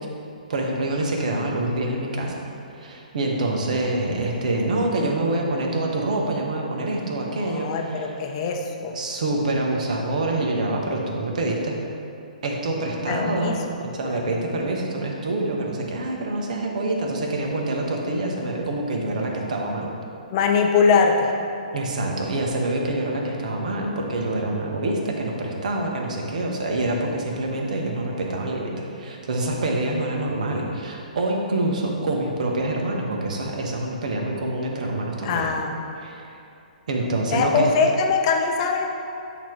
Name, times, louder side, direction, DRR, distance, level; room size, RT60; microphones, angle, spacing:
voice 1, 0.5-2.3 2.7-8.2 8.9-11.7 12.4-19.9 21.7-35.5 36.0-36.3 36.9-37.7, right 2 dB, 60° right, 0 dB, 1.1 m, -26 dB
voice 2, 7.4-9.0 13.1-13.6 14.0-14.4 20.3-21.3 35.2-35.8 37.3-38.8, left 5 dB, 40° left, 2 dB, 0.7 m, -22 dB
8.8 x 3.0 x 4.6 m, 2.6 s
hypercardioid pair, 130°, 4 cm